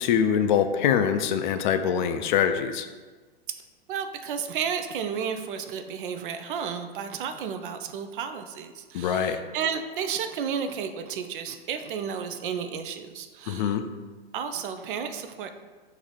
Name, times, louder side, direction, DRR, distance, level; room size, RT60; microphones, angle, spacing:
voice 1, 0.0-2.9 8.9-9.4 13.5-13.8, left 8 dB, 50° left, 8 dB, 0.4 m, -24 dB
voice 2, 3.9-13.8 14.3-15.5, right 7 dB, 60° right, 8 dB, 0.5 m, -32 dB
3.8 x 2.6 x 4.7 m, 1.3 s
hypercardioid pair, 120°, 30 cm